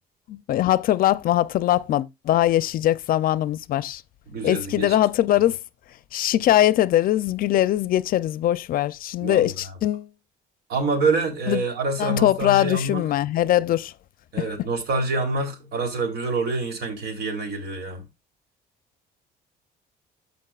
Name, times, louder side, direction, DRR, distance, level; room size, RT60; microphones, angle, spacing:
voice 1, 0.3-4.0 4.4-5.6 6.1-10.1 11.5-11.6 12.0-13.9, left 13 dB, 60° left, 0.5 m, -21 dB
voice 2, 4.3-4.9 9.2-9.7 10.7-13.0 14.3-18.0, right 3 dB, 75° right, 3.3 m, -26 dB
14.5 x 5.2 x 2.4 m
cardioid pair, 110°, 17 cm